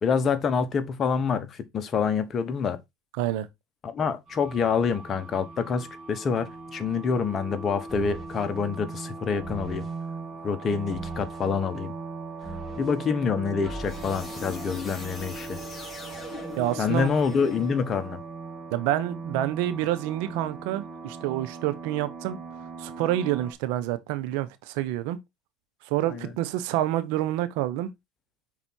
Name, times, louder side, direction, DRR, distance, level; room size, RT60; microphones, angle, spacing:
voice 1, 0.0-2.8 3.8-9.9 10.4-11.9 12.8-15.6 16.8-18.2 26.1-26.3, left 5 dB, 35° left, 1.3 m, -27 dB
sound 1, 4.3-23.5, right 4 dB, 45° right, 2.3 m, -40 dB
sound 2, 7.9-8.4 9.4-10.0 10.9-11.5 12.4-13.0 13.6-18.0, equal, 10° left, 3.6 m, -40 dB
voice 2, 16.6-17.1 18.7-22.4 22.8-25.2 25.9-27.9, right 13 dB, 70° right, 0.8 m, -28 dB
5.5 x 4.2 x 4.4 m
hypercardioid pair, 85°, 0 cm